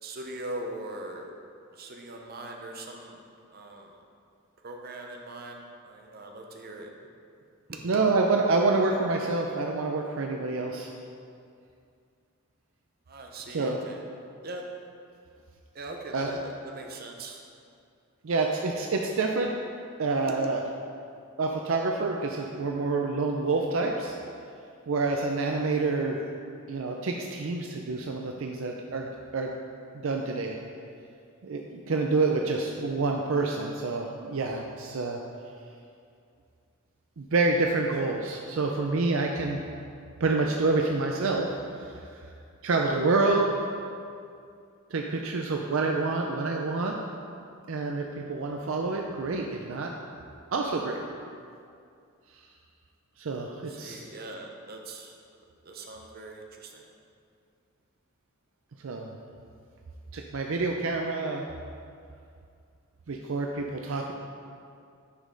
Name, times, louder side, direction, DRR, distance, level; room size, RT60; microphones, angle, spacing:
voice 1, 0.0-1.3 1.8-3.2 3.5-3.9 4.6-6.9 7.7-7.9 13.1-14.0 14.4-14.7 15.7-17.4 53.7-55.2 55.6-56.9, right 2 dB, 45° right, 2 dB, 0.8 m, -41 dB
voice 2, 7.8-10.9 13.5-13.8 16.1-16.4 18.2-19.5 20.0-20.6 21.4-24.2 24.9-26.2 26.7-29.5 29.9-30.6 31.4-35.2 37.2-39.6 40.2-41.5 41.8-42.2 42.6-43.5 44.9-47.0 47.7-49.9 50.5-51.0 52.3-52.4 53.2-54.0 58.8-59.1 60.1-61.4 63.1-64.1, right 3 dB, 65° right, 1 dB, 0.5 m, -27 dB
9.9 x 5.2 x 3.9 m, 2.4 s
head